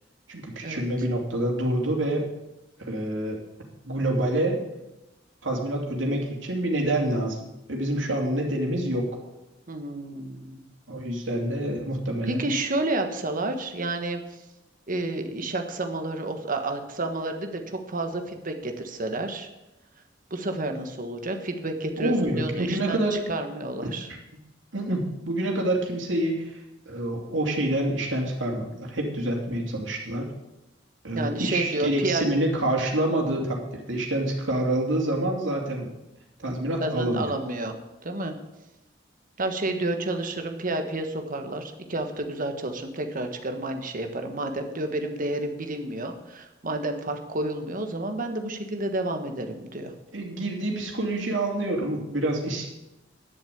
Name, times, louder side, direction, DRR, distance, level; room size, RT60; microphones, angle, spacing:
voice 1, 0.3-2.3 2.8-3.4 3.8-4.6 5.4-9.2 10.9-12.4 22.0-23.2 23.8-23.9 24.7-30.3 31.0-35.9 36.4-37.3 50.1-52.7, right 1 dB, 85° right, 0 dB, 2.8 m, -27 dB
voice 2, 9.7-10.7 12.3-14.4 14.9-19.5 20.3-24.1 31.1-32.3 36.8-37.8 38.0-38.4 39.4-49.9, right 2 dB, 45° right, 5 dB, 1.4 m, -30 dB
10.5 x 7.2 x 8.4 m, 0.95 s
head